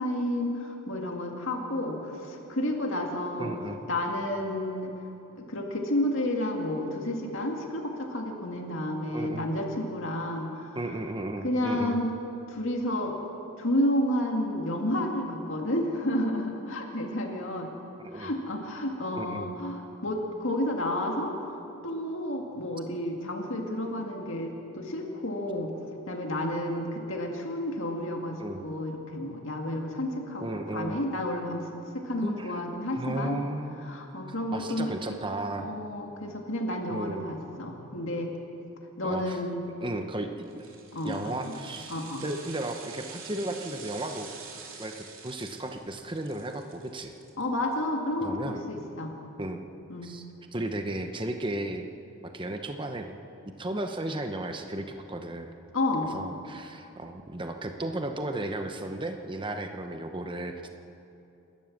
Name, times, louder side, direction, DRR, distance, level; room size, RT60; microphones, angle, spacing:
voice 1, 0.0-3.6 3.9-4.9 5.4-10.8 11.4-12.1 12.5-13.2 13.6-17.7 18.1-25.7 26.1-30.5 30.7-31.7 31.9-33.4 33.8-34.9 35.6-38.3 39.0-39.6 40.9-41.5 41.9-42.2 47.4-49.2 49.9-50.2 55.7-56.1, left 1 dB, 60° left, 1 dB, 2.2 m, -31 dB
voice 2, 3.4-3.8 9.1-9.5 10.7-12.0 18.0-18.3 19.2-19.5 28.4-28.6 30.4-31.0 32.2-32.6 32.9-33.9 34.5-35.7 36.9-37.4 39.0-39.4 39.8-40.7 41.0-41.9 42.2-44.3 44.8-47.1 48.2-48.6 49.4-49.6 50.0-50.2 50.5-51.9 52.2-53.2 53.6-55.5 56.1-60.7, right 1 dB, 20° right, 5 dB, 1.0 m, -34 dB
sound 1, 40.4-47.7 48.1-48.2, right 5 dB, 60° right, 3.1 m, -46 dB
28.0 x 13.0 x 7.4 m, 2.9 s
head